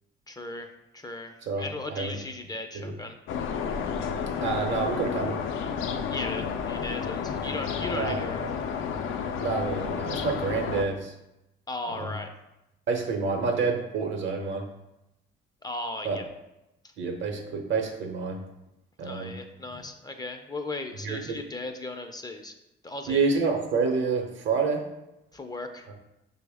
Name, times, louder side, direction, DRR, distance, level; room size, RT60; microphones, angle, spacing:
voice 1, 0.3-3.2 6.1-8.5 11.7-12.3 15.6-16.3 19.0-22.5 22.8-23.2 25.3-25.9, left 2 dB, 20° left, 5 dB, 0.4 m, -37 dB
voice 2, 1.4-2.2 2.7-3.0 4.4-5.4 7.9-8.5 9.4-11.1 11.9-12.1 12.9-14.7 16.0-16.2 17.0-18.4 19.0-19.4 19.7-19.8 21.0-21.4 23.1-24.9 25.9-26.0, right 4 dB, 70° right, 3 dB, 0.8 m, -28 dB
sound 1, 3.3-10.9, left 6 dB, 80° left, 0.4 m, -31 dB
5.8 x 2.1 x 3.4 m, 0.92 s
cardioid pair, 90°, 20 cm